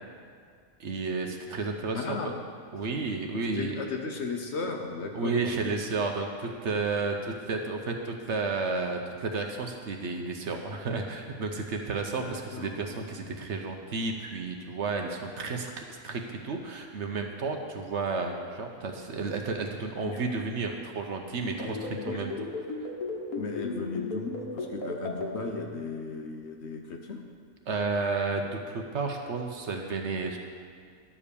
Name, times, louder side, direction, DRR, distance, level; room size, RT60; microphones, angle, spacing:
voice 1, 0.8-2.3 2.7-3.8 5.1-22.3 22.8-22.9 27.7-30.4, right 4 dB, 60° right, 3 dB, 1.0 m, -32 dB
voice 2, 1.9-2.4 3.5-5.5 12.2-13.0 20.0-20.2 21.6-22.2 23.4-27.2, left 4 dB, 55° left, 3 dB, 1.0 m, -36 dB
sound 1, 21.4-25.3, left 4 dB, 90° left, 1.8 m, -34 dB
11.5 x 5.0 x 6.9 m, 2.2 s
omnidirectional pair, 1.5 m